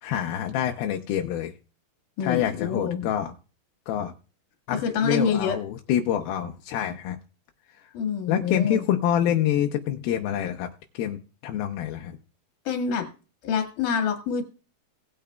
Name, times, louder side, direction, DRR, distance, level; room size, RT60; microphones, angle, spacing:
voice 1, 0.0-1.5 2.2-3.3 3.9-4.1 4.7-7.2 7.8-7.9 8.3-10.7 10.9-12.2, left 10 dB, 85° left, 3 dB, 2.6 m, -26 dB
voice 2, 2.2-3.1 4.7-5.6 7.9-8.8 12.7-13.1 13.4-14.4, left 6 dB, 60° left, 4 dB, 3.1 m, -26 dB
19.0 x 8.6 x 2.3 m, 0.35 s
omnidirectional pair, 4.3 m